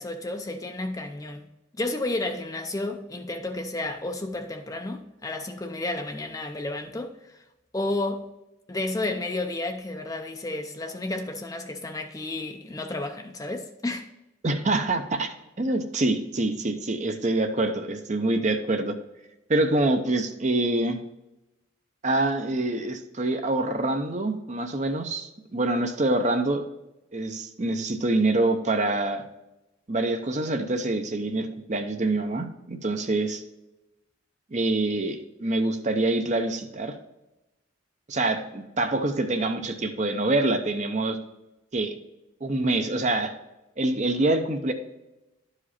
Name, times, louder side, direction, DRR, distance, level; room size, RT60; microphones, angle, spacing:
voice 1, 0.0-1.5 1.7-7.3 7.7-8.3 8.7-14.1, left 2 dB, 15° left, 0.5 m, -31 dB
voice 2, 14.4-18.9 19.5-21.0 22.0-26.6 27.1-29.2 29.9-33.4 34.5-37.0 38.1-41.2 41.7-42.0 42.4-43.3 43.8-44.7, right 2 dB, 35° right, 0.6 m, -25 dB
11.0 x 5.0 x 4.2 m
head